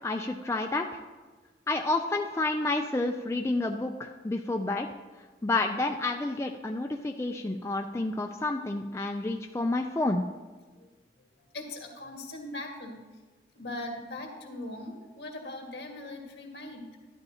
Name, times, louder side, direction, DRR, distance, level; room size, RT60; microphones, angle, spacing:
voice 1, 0.0-1.0 1.7-4.9 5.4-10.2, left 2 dB, 15° left, 3 dB, 0.3 m, -29 dB
voice 2, 11.4-13.0 13.5-17.1, left 2 dB, 70° left, 1 dB, 1.7 m, -40 dB
11.5 x 11.5 x 2.8 m, 1.3 s
head